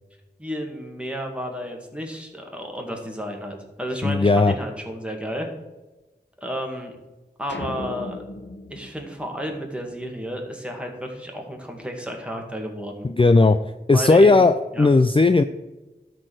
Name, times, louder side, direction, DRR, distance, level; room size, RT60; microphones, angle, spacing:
voice 1, 0.4-5.5 6.4-7.0 7.4-8.2 8.7-13.1 13.9-14.4 14.7-14.9, equal, 5° right, 1 dB, 2.0 m, -32 dB
voice 2, 4.0-4.5 13.0-13.6 13.9-15.4, left 3 dB, 30° left, 9 dB, 0.4 m, -16 dB
sound 1, 7.5-10.0, left 2 dB, 85° left, 0.9 m, -37 dB
12.5 x 4.4 x 6.4 m, 1.1 s
wide cardioid pair, 45°, 18 cm